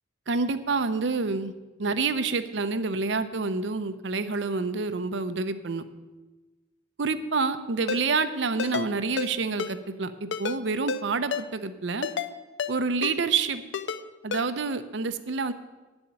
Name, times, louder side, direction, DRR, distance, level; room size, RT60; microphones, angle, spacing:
voice 1, 0.3-1.5 1.8-5.8 7.0-10.1 10.4-12.1 12.7-13.6 14.2-15.5, right 4 dB, 65° right, 10 dB, 0.7 m, -28 dB
Ringtone, 7.9-8.0 8.6-8.9 9.2-9.3 9.6-9.7 10.3-10.6 10.9-11.0 11.3-11.4 12.0-12.3 12.6-12.7 13.0-13.1 13.7-14.0 14.3-14.4, left 5 dB, 70° left, 0.5 m, -30 dB
8.9 x 7.0 x 8.8 m, 1.2 s
head